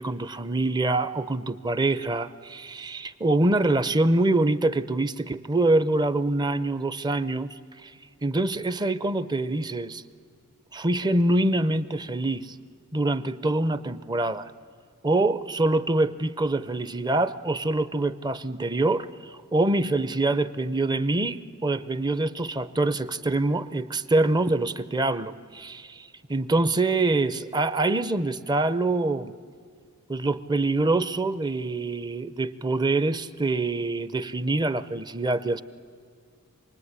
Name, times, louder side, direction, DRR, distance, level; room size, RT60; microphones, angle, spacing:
voice 1, 0.0-7.6 7.8-7.9 8.2-10.0 10.7-12.5 12.9-14.5 15.0-29.3 30.1-35.6, right 2 dB, 20° right, 15 dB, 0.7 m, -25 dB
27.5 x 20.0 x 9.6 m, 2.1 s
head